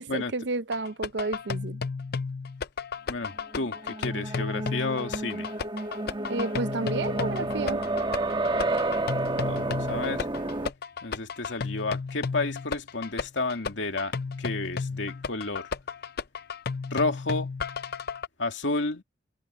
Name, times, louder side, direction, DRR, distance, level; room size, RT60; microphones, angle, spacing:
voice 1, 0.0-1.8 6.3-7.8, right 3 dB, 65° right, 0.7 m, -31 dB
sound 1, 0.7-18.3, left 5 dB, 55° left, 0.6 m, -33 dB
voice 2, 3.1-5.5 9.3-10.3 11.0-15.7 16.9-17.5 18.4-19.0, left 3 dB, 85° left, 2.5 m, -31 dB
sound 2, 3.4-10.7, right 2 dB, 25° right, 1.4 m, -30 dB
head